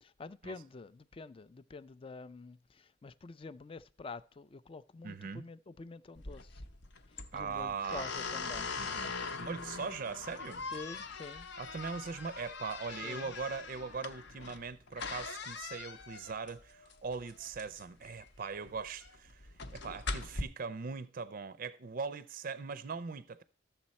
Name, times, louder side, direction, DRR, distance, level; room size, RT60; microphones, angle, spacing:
voice 1, 0.0-6.6 7.1-8.8 10.7-11.5 13.0-13.3, left 3 dB, 30° left, 0.4 m, -47 dB
voice 2, 5.0-5.4 7.3-8.1 8.8-10.6 11.6-23.4, right 5 dB, 45° right, 0.5 m, -40 dB
sound 1, 6.2-20.4, left 4 dB, 60° left, 0.8 m, -42 dB
13.5 x 6.9 x 4.2 m
head